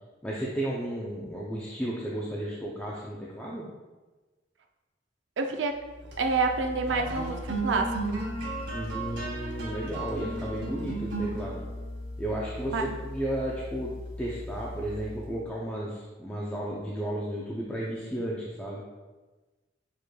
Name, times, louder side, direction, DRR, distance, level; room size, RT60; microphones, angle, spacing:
voice 1, 0.2-3.7 8.7-11.6 12.2-13.9 14.2-18.8, right 1 dB, 10° left, -5 dB, 0.5 m, -33 dB
voice 2, 5.4-5.8 6.2-8.3 12.7-12.9, right 4 dB, 85° right, 4 dB, 0.5 m, -28 dB
sound 1, 5.9-15.5, right 1 dB, 70° right, 1.0 m, -36 dB
7.0 x 3.1 x 2.2 m, 1.2 s
head